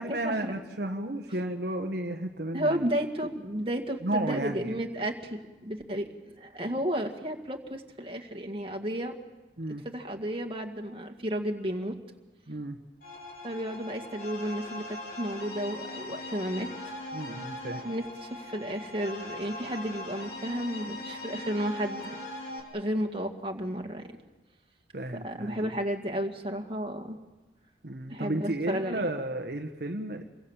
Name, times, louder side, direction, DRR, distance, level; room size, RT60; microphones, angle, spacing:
voice 1, 0.0-2.8 4.0-4.8 9.6-9.8 12.5-12.8 17.1-17.8 24.9-25.7 27.8-30.2, right 1 dB, 60° right, 4 dB, 1.3 m, -33 dB
voice 2, 2.5-9.2 9.8-11.9 13.4-16.9 17.8-22.2 22.7-24.0 25.2-27.2 28.1-29.0, equal, 30° right, 3 dB, 2.0 m, -32 dB
sound 1, 13.0-22.6, left 2 dB, 55° left, 5.0 m, -40 dB
27.5 x 23.0 x 7.4 m, 1.2 s
head